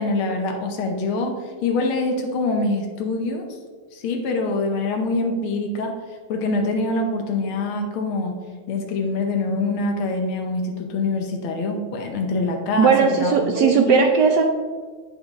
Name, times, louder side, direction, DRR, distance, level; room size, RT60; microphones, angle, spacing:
voice 1, 0.0-3.5 3.9-5.9 6.3-8.3 8.7-14.1, left 3 dB, 85° left, 3 dB, 1.7 m, -24 dB
voice 2, 12.8-14.4, right 6 dB, 70° right, 3 dB, 1.0 m, -17 dB
9.0 x 5.3 x 3.5 m, 1.5 s
omnidirectional pair, 2.2 m